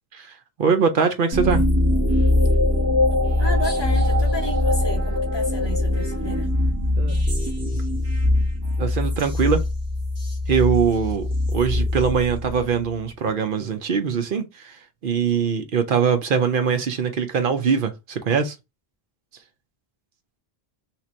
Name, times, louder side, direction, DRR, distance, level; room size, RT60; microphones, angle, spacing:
voice 1, 0.6-1.6 7.0-7.2 8.8-9.6 10.5-14.8 15.0-18.6, right 6 dB, 60° right, 0.8 m, -22 dB
sound 1, 1.3-12.9, left 1 dB, 25° right, 1.1 m, -22 dB
voice 2, 3.4-6.5, left 2 dB, 25° left, 1.0 m, -32 dB
2.9 x 2.5 x 4.2 m
omnidirectional pair, 1.1 m